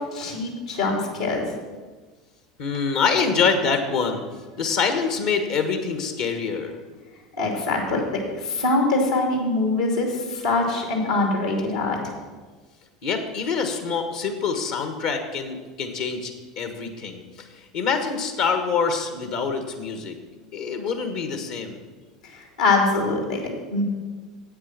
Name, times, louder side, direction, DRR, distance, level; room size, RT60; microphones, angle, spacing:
voice 1, 0.0-1.5 7.4-12.1 22.3-23.8, left 2 dB, 80° left, 1 dB, 2.6 m, -24 dB
voice 2, 2.6-4.2 4.6-6.8 13.0-17.2 17.5-20.1 20.5-21.8, left 5 dB, 60° left, 6 dB, 1.3 m, -25 dB
8.7 x 8.2 x 6.1 m, 1.4 s
figure-of-eight pair, 75°, 3 cm